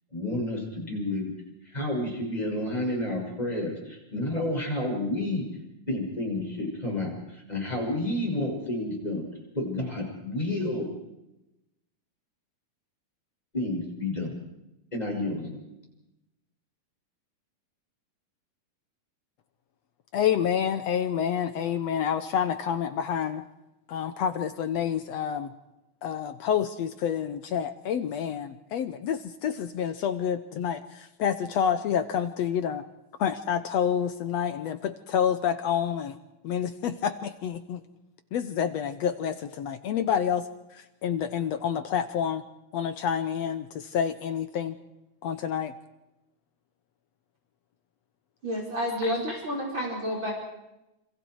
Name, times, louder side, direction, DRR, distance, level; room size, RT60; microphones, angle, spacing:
voice 1, 0.1-1.3 1.6-5.4 5.9-9.2 9.5-10.8 13.5-14.3 14.9-15.6, left 1 dB, 10° left, -1 dB, 6.6 m, -30 dB
voice 2, 20.1-23.4 23.9-25.5 26.0-32.8 33.2-36.2 36.4-37.8 38.3-40.5 41.0-42.4 42.7-44.8 45.2-45.7, left 8 dB, 65° left, 11 dB, 1.8 m, -28 dB
voice 3, 48.4-50.3, equal, 35° right, -2 dB, 6.2 m, -30 dB
28.5 x 26.5 x 4.8 m, 0.93 s
omnidirectional pair, 3.7 m